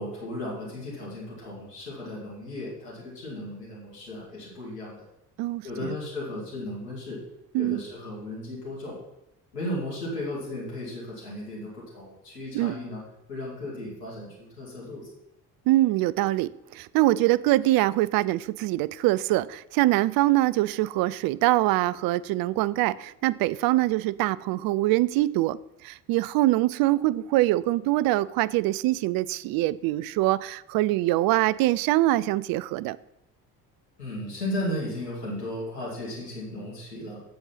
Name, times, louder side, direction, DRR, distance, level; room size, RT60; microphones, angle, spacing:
voice 1, 0.0-5.1 5.6-7.2 7.6-9.0 9.5-13.0 13.3-15.1 34.0-37.2, left 1 dB, 85° left, 2.5 m, -35 dB
voice 2, 5.4-5.9 7.5-7.8 12.5-12.8 15.7-33.0, right 17 dB, 50° right, 0.5 m, -24 dB
7.7 x 7.0 x 5.7 m
figure-of-eight pair, 50°, 47 cm